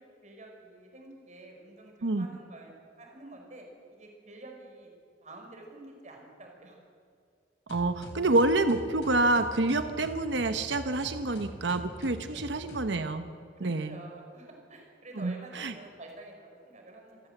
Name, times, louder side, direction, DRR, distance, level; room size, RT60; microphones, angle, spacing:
voice 1, 0.0-4.9 5.2-6.8 12.3-12.4 13.6-17.2, right 2 dB, 40° right, 1 dB, 5.0 m, -49 dB
sound 1, 7.7-13.0, equal, 75° left, 3.6 m, -44 dB
voice 2, 7.7-13.2 13.6-14.0 15.2-15.7, right 2 dB, 80° right, 9 dB, 1.0 m, -27 dB
27.0 x 14.5 x 7.9 m, 2.3 s
head